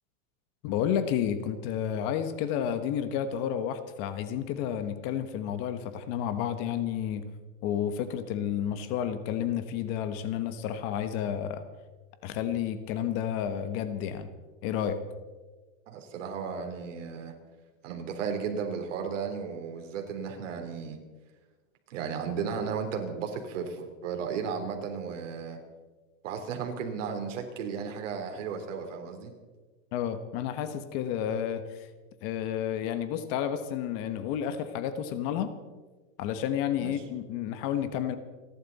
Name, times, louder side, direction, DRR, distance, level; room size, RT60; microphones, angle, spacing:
voice 1, 0.6-7.2 7.6-11.6 12.2-14.3 14.6-15.0 29.9-31.9 32.2-35.5 36.2-38.2, left 9 dB, 35° left, 11 dB, 1.2 m, -31 dB
voice 2, 15.9-17.3 17.8-21.0 21.9-25.6 26.2-29.3 36.8-36.9, right 6 dB, 65° right, 4 dB, 3.7 m, -34 dB
29.5 x 11.5 x 4.1 m, 1.3 s
supercardioid pair, 155°, 40 cm